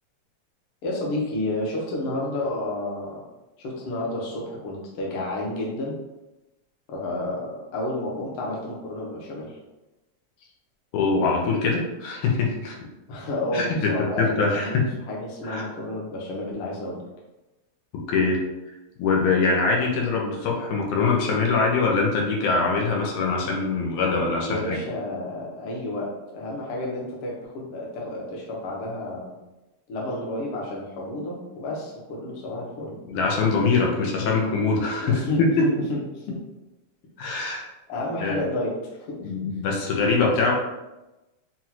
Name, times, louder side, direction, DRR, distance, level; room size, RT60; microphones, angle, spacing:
voice 1, 0.8-3.2 3.6-6.0 6.9-9.6 13.1-17.0 24.4-29.3 29.9-33.0 35.0-36.4 37.9-39.3, left 1 dB, 60° left, -3 dB, 1.5 m, -30 dB
voice 2, 10.9-12.8 13.5-14.7 15.4-15.6 18.1-18.4 19.0-24.8 33.1-35.1 35.6-35.7 37.2-37.7 38.2-38.4 39.2-40.5, left 4 dB, 85° left, -1 dB, 2.2 m, -23 dB
6.0 x 2.4 x 2.9 m, 1.0 s
omnidirectional pair, 3.5 m